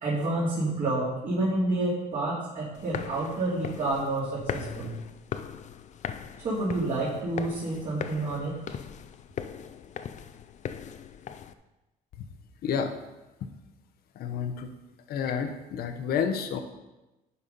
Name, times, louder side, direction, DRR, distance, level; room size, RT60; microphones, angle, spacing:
voice 1, 0.0-4.9 6.4-8.6, right 2 dB, 50° right, -8 dB, 2.8 m, -29 dB
sound 1, 2.8-11.5, left 8 dB, 45° left, 0.5 m, -39 dB
voice 2, 12.6-13.0 13.4-13.5 14.1-14.7 15.1-16.6, left 7 dB, 65° left, 7 dB, 0.9 m, -30 dB
11.0 x 4.2 x 5.3 m, 1.0 s
cardioid pair, 110°, 17 cm